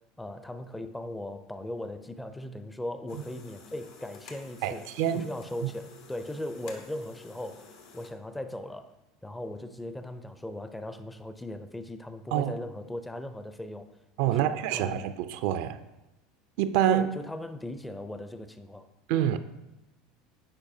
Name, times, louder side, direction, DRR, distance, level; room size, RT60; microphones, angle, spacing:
voice 1, 0.0-8.9 9.2-13.9 14.3-15.0 16.9-18.9, left 1 dB, 10° left, 0.4 m, -38 dB
sound 1, 3.1-8.1, left 4 dB, 70° left, 1.0 m, -51 dB
voice 2, 4.6-5.3 12.3-12.5 14.2-15.8 16.6-17.1 19.1-19.4, right 11 dB, 70° right, 0.3 m, -26 dB
8.7 x 4.6 x 2.7 m
supercardioid pair, 105°, 0 cm